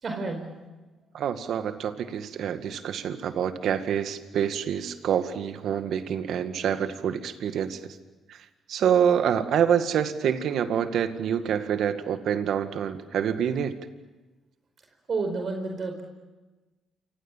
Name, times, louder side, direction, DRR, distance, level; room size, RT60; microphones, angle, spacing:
voice 1, 0.0-0.6 15.1-16.0, right 3 dB, 50° right, 4 dB, 4.7 m, -30 dB
voice 2, 1.1-8.0 8.3-8.4 8.7-13.7, right 8 dB, 70° right, 8 dB, 2.0 m, -26 dB
28.5 x 26.0 x 7.5 m, 1.2 s
cardioid pair, 85°, 0 cm